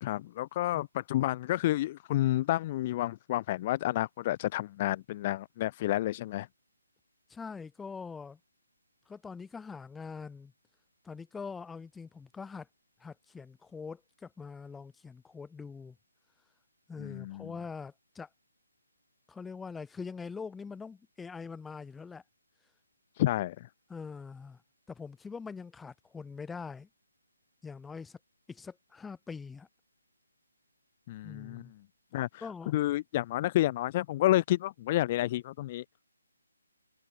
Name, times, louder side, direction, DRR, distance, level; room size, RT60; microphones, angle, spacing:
voice 1, 0.0-6.5 17.0-17.5 23.2-23.7 31.1-31.6 32.1-32.5 32.7-35.8, left 15 dB, 25° left, 0.7 m, -30 dB
voice 2, 7.3-8.4 9.1-10.5 11.0-12.7 13.0-16.0 16.9-18.3 19.3-22.2 23.9-24.6 24.9-26.9 27.6-28.2 28.5-29.7 31.2-31.7 32.4-32.7, left 5 dB, 5° left, 3.3 m, -43 dB
hypercardioid pair, 160°, 0 cm